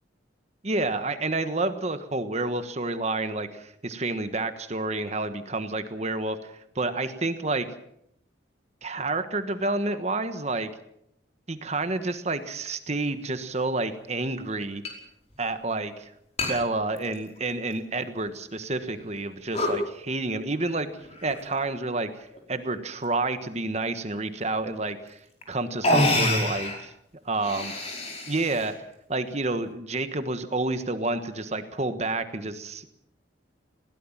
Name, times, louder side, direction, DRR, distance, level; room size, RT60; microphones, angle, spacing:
voice 1, 0.6-7.7 8.8-10.7 11.5-14.8 15.4-16.1 16.5-20.9 21.2-25.2 25.5-26.9 27.3-27.7 28.3-28.7 29.1-32.9, right 2 dB, 35° right, 9 dB, 1.4 m, -29 dB
sound 1, 13.2-13.3 14.8-14.9 15.3-15.4 16.4-16.5 17.0-17.7 18.3-18.4 19.0-19.2 19.5-19.8 21.0-21.5 22.3-22.7 24.6-24.7 25.4-25.5 25.8-26.8 27.3-28.7, left 1 dB, 35° left, 5.1 m, -27 dB
21.0 x 17.5 x 7.4 m, 0.74 s
head